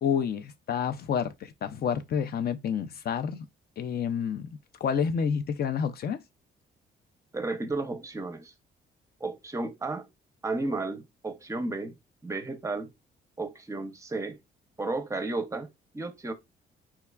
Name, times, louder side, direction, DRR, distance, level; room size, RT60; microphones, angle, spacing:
voice 1, 0.0-3.5 3.8-4.5 4.8-6.2, left 7 dB, 50° left, 0.5 m, -29 dB
voice 2, 7.3-8.5 9.2-10.1 10.4-12.0 12.2-12.9 13.4-14.4 14.8-15.7 15.9-16.3, right 2 dB, 15° right, 0.6 m, -33 dB
4.5 x 2.3 x 2.2 m
cardioid pair, 90°, 20 cm